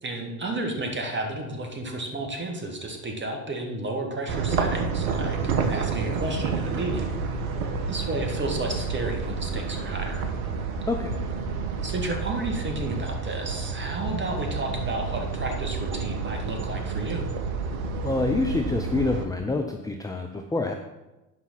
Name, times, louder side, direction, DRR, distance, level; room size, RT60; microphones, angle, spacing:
voice 1, 0.0-7.1 7.9-10.3 11.8-17.3, right 2 dB, 25° right, 2 dB, 2.0 m, -32 dB
sound 1, 4.3-19.3, right 4 dB, 65° right, 1.2 m, -29 dB
voice 2, 18.0-20.7, left 3 dB, 10° left, 4 dB, 0.6 m, -27 dB
9.4 x 5.6 x 5.9 m, 1.0 s
figure-of-eight pair, 65°, 47 cm